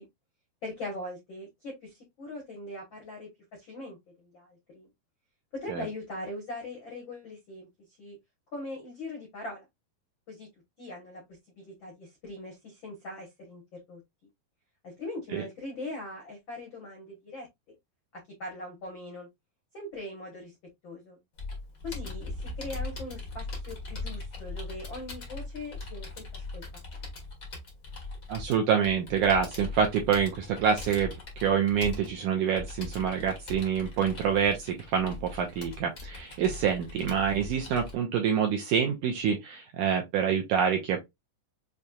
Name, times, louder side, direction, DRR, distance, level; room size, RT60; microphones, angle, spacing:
voice 1, 0.6-4.9 5.5-7.7 8.0-8.2 8.5-9.6 10.3-10.5 10.8-11.2 11.6-13.6 13.9-14.0 14.8-17.5 18.1-19.3 19.7-20.5 20.8-21.2 21.8-26.6 26.9-27.0, left 2 dB, 75° left, 1.1 m, -41 dB
Computer keyboard, 21.4-37.9, left 3 dB, 90° left, 0.7 m, -40 dB
voice 2, 28.3-41.1, right 7 dB, 80° right, 1.8 m, -27 dB
6.3 x 2.8 x 2.3 m
omnidirectional pair, 4.3 m